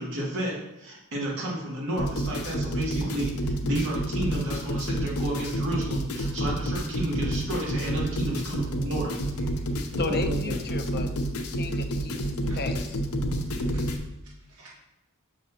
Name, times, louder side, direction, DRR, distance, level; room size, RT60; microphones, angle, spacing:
voice 1, 0.0-9.2 9.9-10.6, right 1 dB, 60° right, -4 dB, 2.1 m, -31 dB
sound 1, 2.0-14.0, right 1 dB, 90° left, 0.8 m, -29 dB
voice 2, 9.4-10.0 12.4-12.6 13.4-14.7, right 3 dB, 80° right, -6 dB, 1.6 m, -54 dB
voice 3, 10.0-11.1 11.4-13.0, left 3 dB, 45° left, 6 dB, 0.6 m, -34 dB
6.4 x 6.2 x 2.9 m, 0.93 s
head